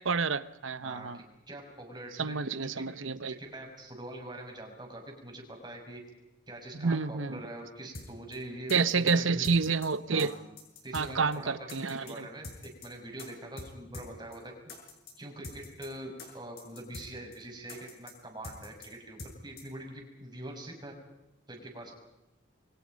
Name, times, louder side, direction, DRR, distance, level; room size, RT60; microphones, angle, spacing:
voice 1, 0.0-1.2 2.2-3.4 6.8-7.4 8.7-10.3 10.9-12.2, right 4 dB, 85° right, 14 dB, 1.0 m, -29 dB
voice 2, 0.8-2.9 3.3-6.0 6.5-9.5 10.1-10.3 10.8-14.5 15.2-21.0 21.5-22.0, right 1 dB, 20° right, 1 dB, 6.1 m, -44 dB
sound 1, 7.9-8.1 8.3-8.4 8.7-9.1 9.4-9.9 10.2-10.3 10.6-11.1 11.3-11.4 11.7-12.1 12.4-12.9 13.2-13.3 13.6-13.7 13.9-14.1 14.3-14.4 14.7-15.1 15.4-15.9 16.2-16.3 16.6-17.1 17.3-17.4 17.7-18.1 18.4-18.9 19.2-19.3 19.6-19.7, left 2 dB, 50° left, 6.6 m, -44 dB
28.0 x 24.0 x 5.3 m, 0.94 s
head